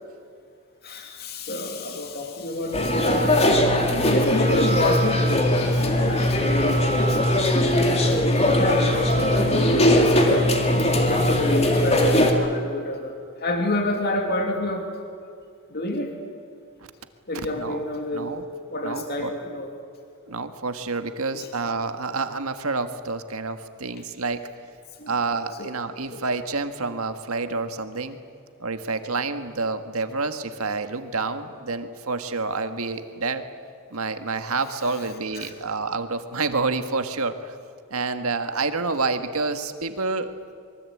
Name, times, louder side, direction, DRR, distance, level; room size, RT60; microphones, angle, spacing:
voice 1, 0.8-3.6 4.0-7.2 8.2-10.5 10.9-14.9 15.7-16.1 17.3-18.3 18.7-19.7 25.0-25.1 25.6-25.7 26.1-26.2 35.4-35.5, left 1 dB, 45° left, 3 dB, 2.8 m, -28 dB
sound 1, 2.7-12.3, left 1 dB, 30° left, 2.6 m, -20 dB
voice 2, 17.3-17.8 18.1-18.4 18.8-19.3 20.3-24.4 25.1-28.2 28.6-33.4 33.9-37.5 37.9-40.3, right 3 dB, 70° right, 8 dB, 1.7 m, -28 dB
25.0 x 23.0 x 8.6 m, 2.3 s
head